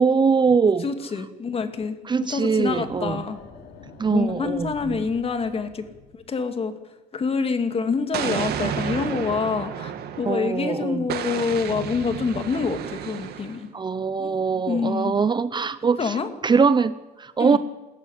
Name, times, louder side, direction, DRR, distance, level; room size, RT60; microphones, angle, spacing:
voice 1, 0.0-0.8 2.1-3.2 4.0-5.0 10.3-11.0 13.7-16.1 16.4-17.6, right 5 dB, 25° right, 14 dB, 0.8 m, -22 dB
voice 2, 0.8-3.4 4.1-5.9 6.1-6.7 7.1-13.7 14.2-14.3 14.7-15.1 16.0-16.3 17.4-17.6, left 5 dB, 35° left, 8 dB, 2.4 m, -26 dB
sound 1, 2.6-6.3, left 3 dB, 70° left, 4.7 m, -45 dB
Explosion, 8.1-10.6 11.1-13.7, right 8 dB, 70° right, 2.3 m, -31 dB
20.5 x 14.5 x 9.9 m, 1.1 s
cardioid pair, 110°, 17 cm